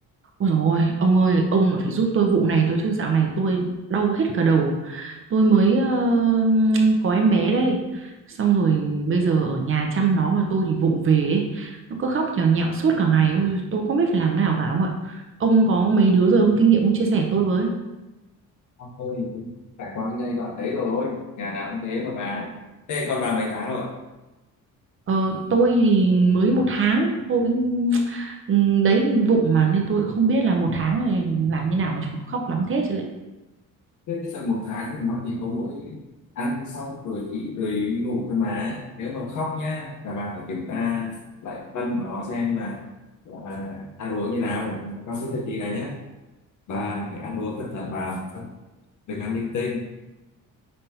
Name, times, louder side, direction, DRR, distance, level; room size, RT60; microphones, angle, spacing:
voice 1, 0.4-17.7 25.1-33.0, right 4 dB, 40° right, 2 dB, 0.7 m, -21 dB
voice 2, 18.8-19.5 19.8-22.5 22.9-23.9 34.1-36.0 36.4-42.8 43.3-45.9 46.7-48.5 49.1-49.9, left 3 dB, 60° left, 1 dB, 1.0 m, -29 dB
5.3 x 3.4 x 2.8 m, 1.1 s
cardioid pair, 125°, 34 cm